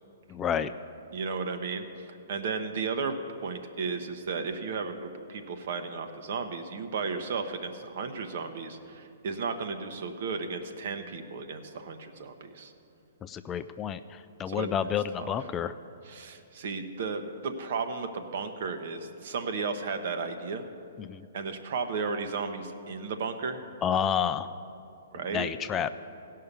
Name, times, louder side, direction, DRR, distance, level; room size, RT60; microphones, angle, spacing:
voice 1, 0.3-0.7 13.2-15.7 21.0-21.3 23.8-24.5 25.3-25.9, left 8 dB, 20° left, 10 dB, 0.3 m, -30 dB
voice 2, 1.1-3.1 3.4-12.7 14.5-14.7 15.2-15.5 16.0-20.6 21.3-23.6 25.1-25.5, right 4 dB, 60° right, 7 dB, 1.0 m, -34 dB
16.0 x 5.6 x 6.8 m, 2.6 s
hypercardioid pair, 135°, 0 cm